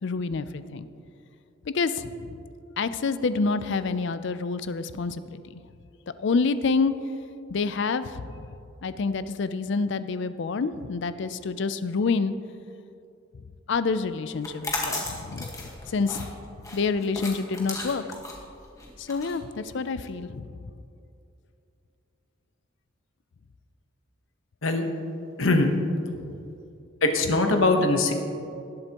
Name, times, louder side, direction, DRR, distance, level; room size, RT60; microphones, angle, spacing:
voice 1, 0.0-0.9 1.7-2.4 2.8-5.6 6.2-6.9 7.5-8.5 8.8-12.3 13.7-16.3 16.7-18.0 19.0-20.5 26.1-26.3, left 4 dB, 60° left, 13 dB, 0.5 m, -28 dB
sound 1, 14.3-20.1, left 2 dB, 15° left, 1.4 m, -35 dB
voice 2, 25.4-25.7 27.0-28.1, left 2 dB, 75° left, 5 dB, 1.1 m, -21 dB
18.0 x 7.8 x 3.0 m, 2.6 s
head